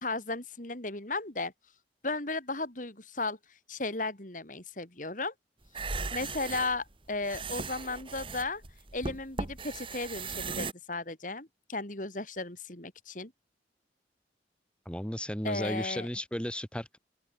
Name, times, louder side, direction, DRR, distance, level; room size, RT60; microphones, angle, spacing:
voice 1, 0.0-1.5 2.0-3.4 3.7-5.3 6.1-8.6 8.9-13.3 15.4-16.1, left 3 dB, 45° left, 3.5 m, -35 dB
sound 1, 5.7-10.7, right 4 dB, 30° right, 1.8 m, -37 dB
voice 2, 14.8-17.0, equal, 5° left, 1.2 m, -34 dB
open air
head